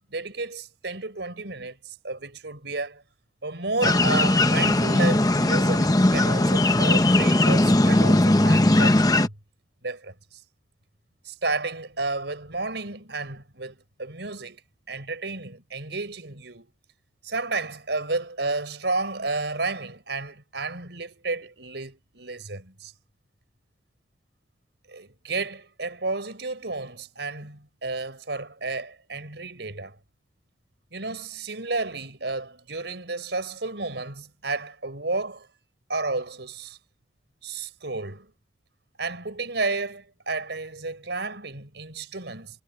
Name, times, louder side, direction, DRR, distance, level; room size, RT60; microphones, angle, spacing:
voice 1, 0.0-3.0 3.4-9.3 9.8-10.1 11.2-14.6 14.9-16.7 17.2-22.9 24.9-30.0 30.9-35.5 35.9-36.8 37.4-38.3 39.0-42.6, right 3 dB, 80° right, 4.2 m, -32 dB
sound 1, 3.8-9.3, left 1 dB, 20° left, 0.8 m, -19 dB
head